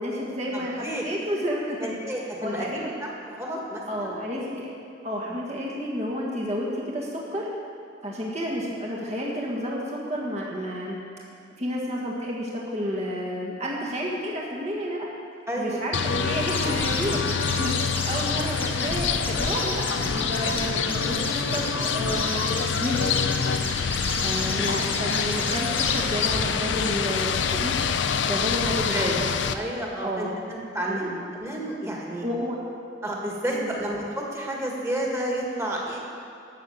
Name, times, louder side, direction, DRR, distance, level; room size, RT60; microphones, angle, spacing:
voice 1, 0.0-1.9 2.4-2.9 3.9-4.7 5.0-7.5 8.0-11.0 11.6-15.1 15.6-19.9 20.3-22.4 22.8-23.1 24.2-27.7 28.3-29.1 30.0-30.4 30.8-31.2 32.2-32.6 33.5-33.7, equal, 35° right, -3 dB, 1.6 m, -30 dB
voice 2, 0.5-1.0 1.8-4.4 5.2-5.3 8.2-8.3 15.5-15.8 24.2-24.8 28.7-32.2 33.0-36.0, right 1 dB, 15° right, -2 dB, 1.9 m, -31 dB
sound 1, 15.9-29.6, left 6 dB, 80° left, 0.6 m, -26 dB
sound 2, 16.5-26.3, left 2 dB, 10° left, 1.2 m, -33 dB
13.5 x 6.5 x 8.0 m, 2.5 s
head